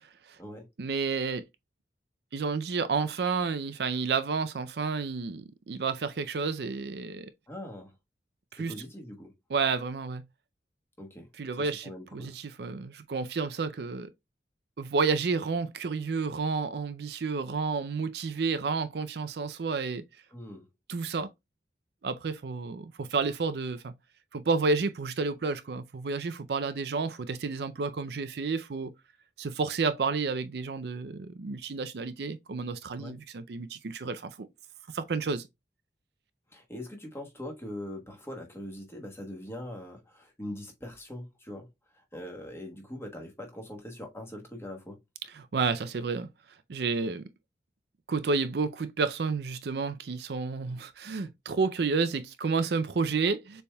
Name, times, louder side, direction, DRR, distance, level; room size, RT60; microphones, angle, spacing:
voice 1, 0.8-1.4 2.3-7.3 8.5-8.7 9.5-10.2 11.4-14.1 14.8-20.0 20.9-21.3 22.0-23.9 24.3-28.9 29.4-34.5 34.9-35.5 45.3-46.3 46.7-47.2 48.1-53.6, right 4 dB, 65° right, 0.5 m, -30 dB
voice 2, 7.5-7.9 8.6-9.3 11.0-11.3 11.6-12.3 20.3-20.6 33.0-33.2 36.5-41.7 41.9-45.0, left 1 dB, 15° left, 1.3 m, -42 dB
6.8 x 3.4 x 2.2 m
head